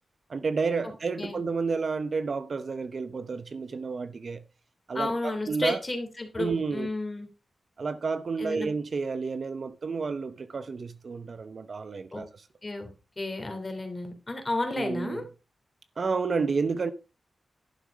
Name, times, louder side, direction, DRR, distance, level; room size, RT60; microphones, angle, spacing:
voice 1, 0.3-4.4 4.9-5.8 6.4-6.9 7.8-12.3 14.7-15.2 16.0-16.9, right 4 dB, 50° right, 0.7 m, -30 dB
voice 2, 4.9-7.3 8.4-8.7 12.1-12.3 12.6-12.9 13.2-15.2, left 2 dB, 25° left, 3.1 m, -32 dB
11.5 x 6.4 x 5.1 m
wide cardioid pair, 135°, 0 cm